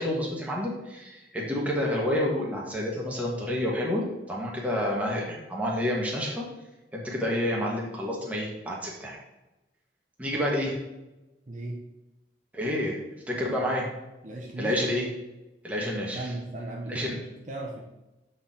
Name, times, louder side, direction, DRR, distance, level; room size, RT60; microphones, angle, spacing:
voice 1, 0.0-6.4 6.9-9.2 10.2-10.8 12.5-13.0 13.3-13.8 14.6-15.1 15.6-16.3 16.9-17.2, left 1 dB, 10° right, -3 dB, 1.4 m, -29 dB
voice 2, 11.5-11.8 13.3-13.7 14.2-14.8 16.1-17.8, right 2 dB, 45° right, -1 dB, 0.8 m, -37 dB
7.7 x 4.3 x 3.8 m, 1.0 s
head